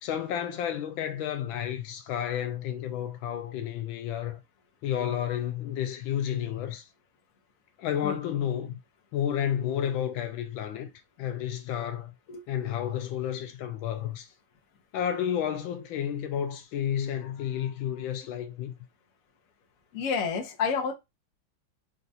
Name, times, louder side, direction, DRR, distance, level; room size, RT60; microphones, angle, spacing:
voice 1, 0.0-4.4 4.8-6.8 7.8-8.8 9.1-10.9 11.2-12.1 12.5-14.3 14.9-18.7, left 10 dB, 85° left, 1.4 m, -31 dB
voice 2, 19.9-20.9, left 6 dB, 55° left, 1.1 m, -29 dB
4.2 x 2.4 x 2.7 m
omnidirectional pair, 2.1 m